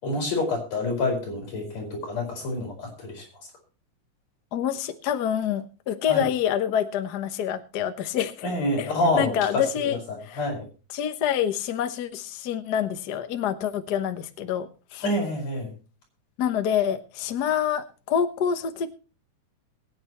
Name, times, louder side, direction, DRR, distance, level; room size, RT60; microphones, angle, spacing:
voice 1, 0.0-3.3 6.1-6.3 8.4-10.6 15.0-15.7, left 2 dB, 60° left, 0 dB, 6.0 m, -27 dB
voice 2, 4.5-8.5 8.8-8.9 9.1-10.0 10.2-10.4 10.9-15.0 16.4-18.9, left 9 dB, 90° left, 9 dB, 0.8 m, -27 dB
21.5 x 9.5 x 3.1 m, 0.34 s
omnidirectional pair, 3.5 m